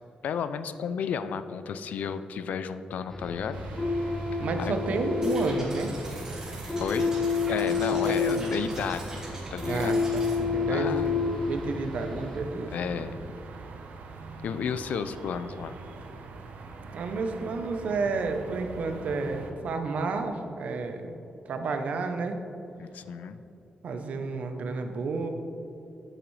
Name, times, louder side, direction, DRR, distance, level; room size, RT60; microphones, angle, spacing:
voice 1, 0.2-3.6 4.3-4.8 6.8-7.1 7.5-9.0 9.5-10.0 10.7-11.1 12.7-13.3 14.4-15.7 22.8-23.4, left 7 dB, 70° left, 12 dB, 0.4 m, -33 dB
sound 1, 3.1-12.4, left 4 dB, 15° left, 0.6 m, -30 dB
sound 2, 3.5-19.5, right 3 dB, 90° right, 0.8 m, -42 dB
voice 2, 4.4-6.0 8.0-8.5 9.7-11.2 11.5-12.7 16.9-22.4 23.8-25.3, right 4 dB, 60° right, 6 dB, 0.7 m, -31 dB
sound 3, 5.2-10.3, right 2 dB, 25° right, 2.0 m, -43 dB
9.0 x 8.8 x 3.2 m, 2.8 s
wide cardioid pair, 180°, 3 cm